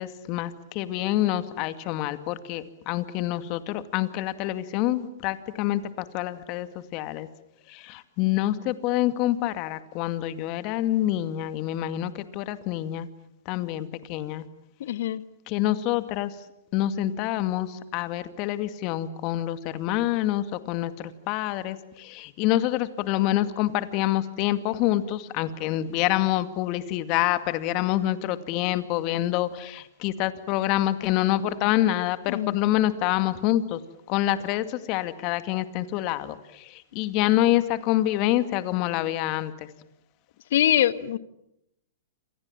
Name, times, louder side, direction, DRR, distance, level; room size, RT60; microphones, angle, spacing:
voice 1, 0.0-7.3 7.7-13.1 13.5-14.5 15.5-16.5 16.7-33.8 34.1-39.7, left 14 dB, 40° left, 11 dB, 2.2 m, -26 dB
voice 2, 14.8-15.2 32.3-32.6 40.5-41.2, left 11 dB, 60° left, 14 dB, 1.5 m, -23 dB
28.0 x 27.0 x 7.5 m, 0.81 s
hypercardioid pair, 115°, 0 cm